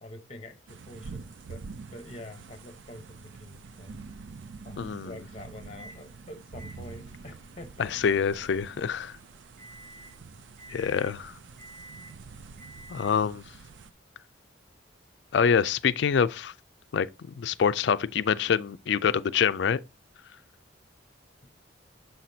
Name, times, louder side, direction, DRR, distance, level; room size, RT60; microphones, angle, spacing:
voice 1, 0.0-1.6 1.9-4.0 4.6-8.0, left 1 dB, 30° left, 0.8 m, -46 dB
sound 1, 0.7-13.9, right 4 dB, 75° right, 0.4 m, -46 dB
voice 2, 4.8-5.1 7.8-9.1 10.7-11.3 12.9-13.4 15.3-16.5 16.9-17.1 17.4-19.8, left 7 dB, 65° left, 0.4 m, -25 dB
Microwave oven, 5.8-6.0 6.6-13.4, right 1 dB, 45° right, 4.1 m, -52 dB
6.9 x 5.9 x 2.7 m
head